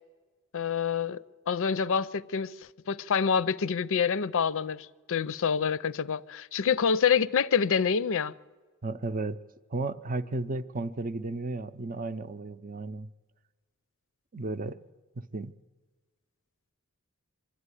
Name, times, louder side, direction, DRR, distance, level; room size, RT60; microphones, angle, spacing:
voice 1, 0.5-2.5 2.9-8.3, left 6 dB, 60° left, 0.5 m, -27 dB
voice 2, 8.8-9.4 9.7-13.1 14.3-14.8 15.2-15.5, right 2 dB, 40° right, 0.6 m, -34 dB
24.0 x 13.0 x 9.8 m
head